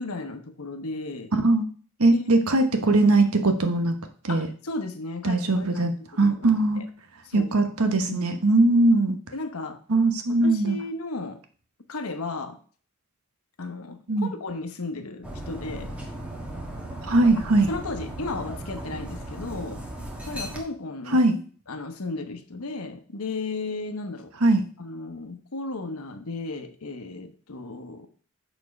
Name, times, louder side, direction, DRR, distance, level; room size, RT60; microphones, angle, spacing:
voice 1, 0.0-1.3 2.1-2.2 2.9-3.0 4.3-5.9 6.2-6.8 7.3-7.5 8.0-8.3 9.3-9.8 10.4-11.4 11.9-12.6 13.6-16.0 17.7-19.8 20.3-21.2 21.7-24.3 24.8-28.1, left 3 dB, 85° left, 8 dB, 1.0 m, -34 dB
voice 2, 1.3-1.7 2.0-4.0 4.2-4.5 5.2-5.9 6.2-6.8 7.3-9.2 9.9-10.8 14.1-14.3 17.0-17.7 21.1-21.3 24.4-24.6, right 2 dB, 85° right, 7 dB, 1.1 m, -20 dB
Dog, 15.2-20.6, right 1 dB, 5° right, 1.5 m, -36 dB
7.1 x 4.4 x 5.3 m, 0.43 s
head